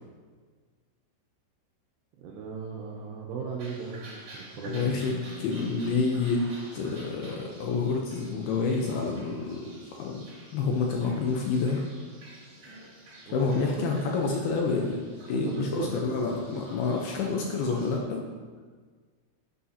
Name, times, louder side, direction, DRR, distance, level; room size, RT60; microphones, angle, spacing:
voice 1, 2.2-5.0 13.3-13.4 13.8-13.9 15.5-15.9, right 5 dB, 80° right, -1 dB, 2.6 m, -36 dB
sound 1, 3.6-18.0, right 1 dB, 45° right, 3.0 m, -49 dB
voice 2, 4.6-9.6 10.0-10.3 10.5-11.8 13.3-15.0 15.3-18.2, left 4 dB, 80° left, 0 dB, 2.3 m, -28 dB
11.0 x 8.5 x 2.8 m, 1.5 s
omnidirectional pair, 5.5 m